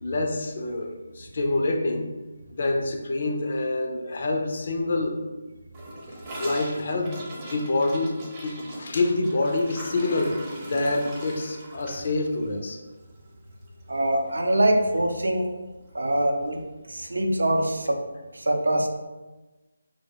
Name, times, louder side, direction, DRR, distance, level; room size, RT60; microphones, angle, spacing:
voice 1, 0.0-2.1 2.5-5.3 6.4-12.8, left 2 dB, 55° left, 3 dB, 0.4 m, -27 dB
Gurgling / Toilet flush, 5.7-14.0 14.3-14.4 14.7-15.1 15.4-15.5 15.8-15.9 16.8-16.9, right 1 dB, 25° right, 0.5 m, -40 dB
voice 2, 13.9-15.5 15.9-16.6 16.9-18.0 18.3-18.9, right 1 dB, 85° right, 3 dB, 0.4 m, -23 dB
2.1 x 2.1 x 2.8 m, 1.1 s
figure-of-eight pair, 155°, 0 cm